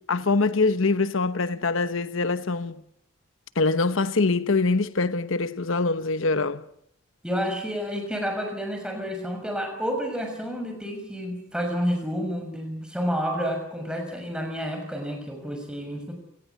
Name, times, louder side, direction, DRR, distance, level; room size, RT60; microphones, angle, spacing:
voice 1, 0.1-2.8 3.6-6.6, left 3 dB, 75° left, 1.0 m, -24 dB
voice 2, 7.2-16.1, equal, 5° right, 6.2 m, -30 dB
29.0 x 19.5 x 8.4 m
head